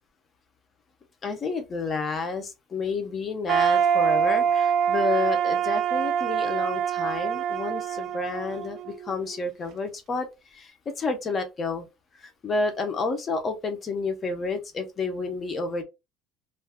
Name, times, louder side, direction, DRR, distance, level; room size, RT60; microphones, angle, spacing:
voice 1, 1.2-11.9 12.1-15.8, left 3 dB, 20° left, 0.6 m, -30 dB
sound 1, 3.5-9.4, right 8 dB, 40° right, 0.3 m, -25 dB
2.5 x 2.2 x 3.4 m
cardioid pair, 175°, 0 cm